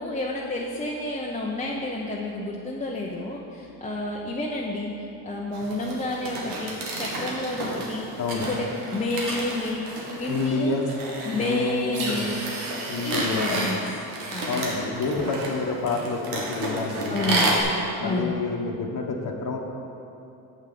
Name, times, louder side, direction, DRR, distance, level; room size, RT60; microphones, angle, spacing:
voice 1, 0.0-9.8 10.2-10.8 11.2-12.4 13.0-13.8 14.3-14.8 17.1-17.6 18.0-18.4, left 1 dB, 15° left, -3 dB, 0.9 m, -30 dB
sound 1, 5.5-17.6, right 2 dB, 75° right, 1.7 m, -31 dB
voice 2, 10.3-10.9 11.3-12.3 12.9-13.7 14.5-17.5 18.0-19.6, left 4 dB, 40° left, 0 dB, 1.2 m, -28 dB
7.3 x 5.6 x 6.8 m, 2.8 s
supercardioid pair, 65°, 48 cm